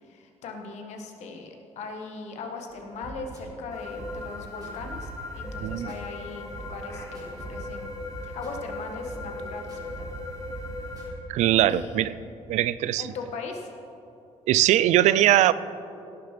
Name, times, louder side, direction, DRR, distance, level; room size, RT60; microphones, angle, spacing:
voice 1, 0.1-7.9 8.2-10.1 11.7-12.0 13.0-13.7, left 4 dB, 75° left, 4 dB, 1.5 m, -39 dB
sound 1, 2.7-11.7, right 2 dB, 35° right, 2.7 m, -42 dB
sound 2, 3.7-11.1, left 3 dB, 25° left, 2.0 m, -39 dB
voice 2, 5.6-5.9 11.3-12.1 12.5-13.1 14.5-15.5, right 13 dB, 85° right, 17 dB, 0.4 m, -21 dB
17.5 x 6.7 x 5.8 m, 2.7 s
cardioid pair, 155°, 12 cm